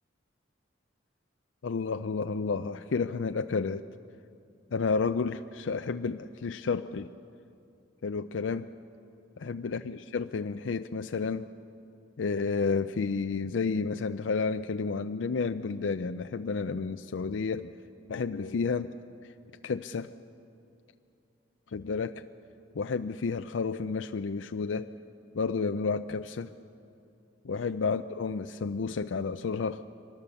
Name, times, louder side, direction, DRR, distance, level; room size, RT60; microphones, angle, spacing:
voice 1, 1.6-3.9 4.7-7.1 8.0-8.7 9.4-11.5 12.2-17.7 18.1-18.9 19.6-20.1 21.7-22.2 22.8-24.9 25.3-26.5 27.4-29.8, left 4 dB, 85° left, 9 dB, 0.5 m, -31 dB
24.0 x 18.5 x 7.1 m, 2.6 s
head